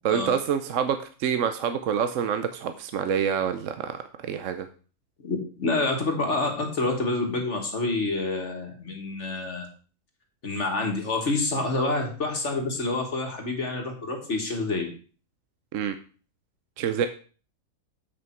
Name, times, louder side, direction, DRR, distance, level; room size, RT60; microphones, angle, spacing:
voice 1, 0.0-4.7 15.7-15.9 16.8-17.1, right 8 dB, 65° right, 9 dB, 0.9 m, -27 dB
voice 2, 5.2-9.7 10.4-14.9, left 2 dB, 50° left, 2 dB, 1.9 m, -27 dB
7.9 x 6.5 x 4.5 m, 0.39 s
omnidirectional pair, 1.6 m